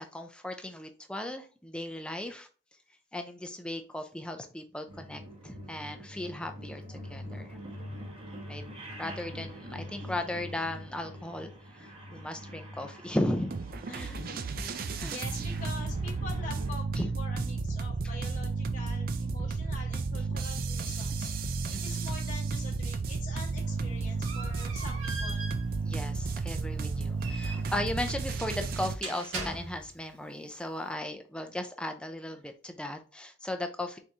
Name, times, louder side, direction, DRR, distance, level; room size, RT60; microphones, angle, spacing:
voice 1, 0.0-2.5 3.1-7.6 8.5-8.6 9.0-11.5 11.8-13.5 13.9-14.2 14.9-15.2 17.0-17.1 17.4-17.5 21.7-22.0 25.8-34.0, left 1 dB, 5° left, 5 dB, 0.5 m, -36 dB
sound 1, 4.9-16.7, equal, 30° right, 1.0 m, -44 dB
sound 2, 13.5-29.0, right 4 dB, 50° right, 0.4 m, -33 dB
voice 2, 13.9-21.3 21.7-25.4, left 3 dB, 40° left, -2 dB, 0.9 m, -45 dB
sound 3, 23.5-30.1, right 3 dB, 90° right, 2.1 m, -42 dB
4.6 x 3.9 x 2.8 m, 0.36 s
head